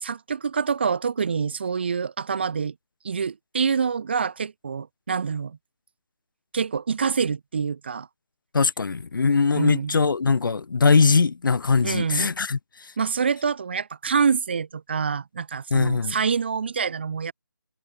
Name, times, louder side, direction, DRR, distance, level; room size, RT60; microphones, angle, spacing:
voice 1, 0.0-2.7 3.0-5.6 6.5-8.1 9.5-10.0 11.8-12.3 13.0-17.3, right 6 dB, 30° right, 0.4 m, -26 dB
voice 2, 8.5-12.6 15.7-16.2, left 4 dB, 70° left, 0.4 m, -21 dB
figure-of-eight pair, 155°, 11 cm